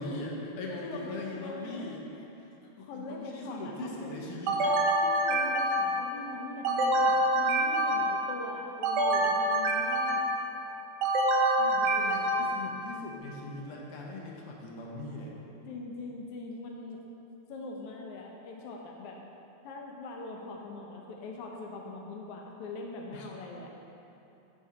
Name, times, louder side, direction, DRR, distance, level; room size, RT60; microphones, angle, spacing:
voice 1, 0.0-2.0 2.4-2.5 2.8-4.9 11.6-15.3 23.1-23.3, left 2 dB, 65° left, -2 dB, 1.6 m, -40 dB
voice 2, 0.7-2.0 2.8-4.1 5.0-10.2 15.7-17.0 17.5-19.2 19.6-23.7, left 2 dB, 85° left, 0 dB, 1.3 m, -42 dB
sound 1, 4.5-6.1 6.6-8.3 8.8-10.5 11.0-12.7, right 1 dB, 80° right, 1.4 m, -26 dB
8.3 x 4.3 x 4.8 m, 2.9 s
omnidirectional pair, 3.3 m